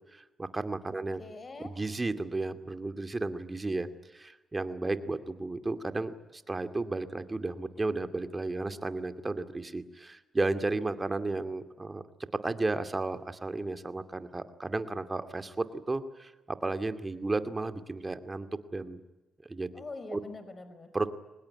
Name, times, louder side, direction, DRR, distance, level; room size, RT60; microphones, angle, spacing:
voice 1, 0.1-1.2 1.6-3.9 4.1-12.0 12.3-18.5 18.7-19.0 19.5-19.7 20.1-20.2 20.9-21.1, right 2 dB, 25° right, 9 dB, 2.4 m, -33 dB
voice 2, 0.9-1.8 19.7-20.9, left 3 dB, 40° left, 11 dB, 4.7 m, -44 dB
24.0 x 20.0 x 9.8 m, 1.1 s
supercardioid pair, 55°, 0 cm